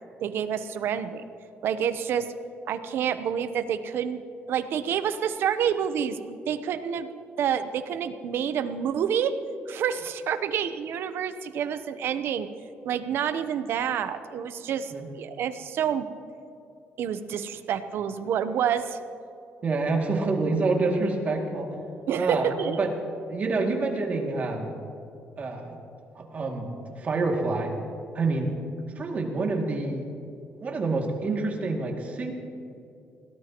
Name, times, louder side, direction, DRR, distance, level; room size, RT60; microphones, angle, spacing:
voice 1, 0.2-1.2 1.6-2.3 2.7-4.2 4.5-7.1 7.4-9.3 9.7-12.5 12.8-16.1 17.0-19.0 22.1-22.8, right 8 dB, 65° right, 11 dB, 0.8 m, -28 dB
voice 2, 19.6-21.8 22.1-22.9 23.3-24.7 25.4-25.8 26.1-27.7 28.1-28.5 29.0-30.1 30.6-32.3, right 3 dB, 40° right, 0 dB, 2.4 m, -27 dB
21.5 x 17.5 x 3.0 m, 2.7 s
cardioid pair, 135°, 4 cm